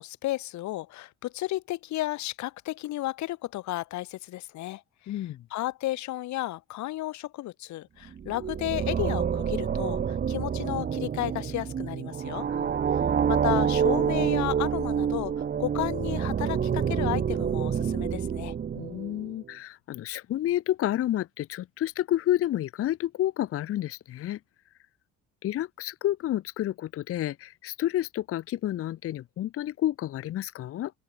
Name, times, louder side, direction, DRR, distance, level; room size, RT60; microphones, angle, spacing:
voice 1, 0.0-12.5 13.3-18.5, left 16 dB, 70° left, 6.6 m, -33 dB
voice 2, 5.1-5.4 12.5-12.7 18.7-24.4 25.4-30.9, left 13 dB, 50° left, 1.0 m, -30 dB
sound 1, 8.1-19.3, right 7 dB, 30° right, 1.8 m, -27 dB
open air
cardioid pair, 135°, 30 cm